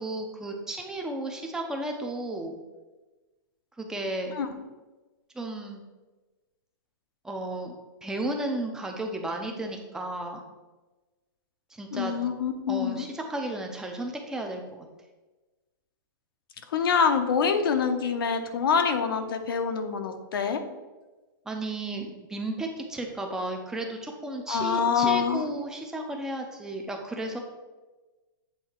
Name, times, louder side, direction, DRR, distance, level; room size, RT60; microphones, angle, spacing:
voice 1, 0.0-2.6 3.8-4.3 5.3-5.8 7.2-7.7 8.0-10.4 11.7-12.1 12.7-14.9 21.5-27.4, right 1 dB, 5° right, 3 dB, 0.5 m, -33 dB
voice 2, 11.9-13.1 16.7-20.6 24.5-25.4, left 6 dB, 85° left, 6 dB, 0.8 m, -25 dB
8.0 x 2.8 x 4.4 m, 1.2 s
hypercardioid pair, 160°, 12 cm